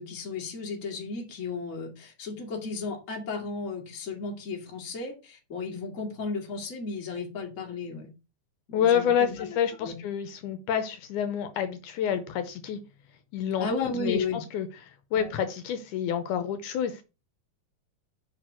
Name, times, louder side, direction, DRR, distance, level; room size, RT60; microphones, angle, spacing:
voice 1, 0.0-8.1 8.7-10.0 13.6-14.4 15.1-15.3, left 4 dB, 30° left, 1.8 m, -34 dB
voice 2, 8.7-12.8 13.3-14.7 15.1-17.0, left 8 dB, 75° left, 2.2 m, -28 dB
5.9 x 5.2 x 6.1 m
omnidirectional pair, 3.7 m